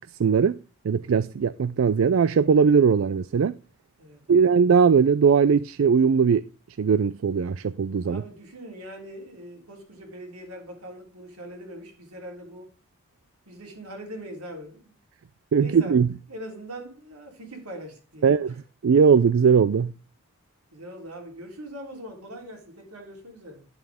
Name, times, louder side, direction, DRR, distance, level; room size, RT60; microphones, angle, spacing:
voice 1, 0.2-0.6 0.8-3.5 4.3-6.5 6.8-8.2 15.5-16.1 18.2-18.6 18.8-19.9, right 6 dB, 65° right, 0.3 m, -19 dB
voice 2, 4.0-4.4 8.0-12.7 13.5-14.9 15.6-16.0 16.3-18.6 20.7-23.7, right 1 dB, 90° right, 3.5 m, -41 dB
10.5 x 7.7 x 3.6 m
head